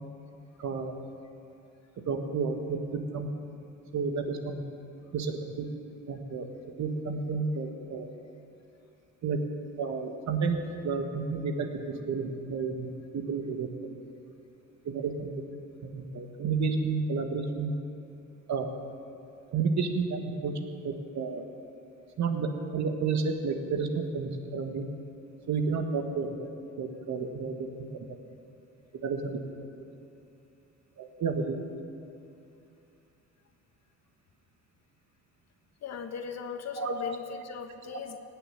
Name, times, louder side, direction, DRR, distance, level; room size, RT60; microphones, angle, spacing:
voice 1, 0.6-0.9 2.0-3.3 3.9-4.6 5.1-5.7 6.1-6.5 6.8-8.1 9.2-9.4 9.8-13.9 14.8-15.3 15.8-17.7 18.5-18.7 19.5-21.4 22.2-24.8 25.5-26.5 26.8-27.7 27.9-28.2 29.0-29.4 31.0-31.6 36.8-37.0 37.9-38.0, right 4 dB, 65° right, 5 dB, 1.7 m, -31 dB
voice 2, 35.8-38.2, left 6 dB, 60° left, 7 dB, 1.3 m, -38 dB
19.0 x 7.1 x 9.2 m, 2.6 s
cardioid pair, 90°, 30 cm